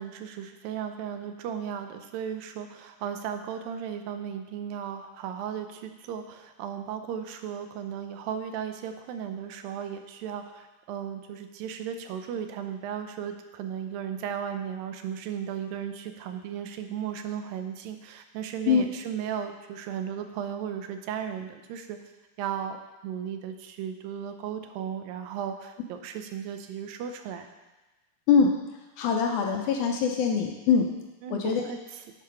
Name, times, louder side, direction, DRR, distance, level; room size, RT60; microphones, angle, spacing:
voice 1, 0.0-22.0 22.4-22.8 23.0-27.5 31.2-31.8, right 8 dB, 80° right, 7 dB, 2.3 m, -35 dB
voice 2, 29.0-30.9 31.3-31.6, left 6 dB, 80° left, 2 dB, 1.8 m, -23 dB
9.3 x 5.0 x 5.6 m, 1.1 s
omnidirectional pair, 4.2 m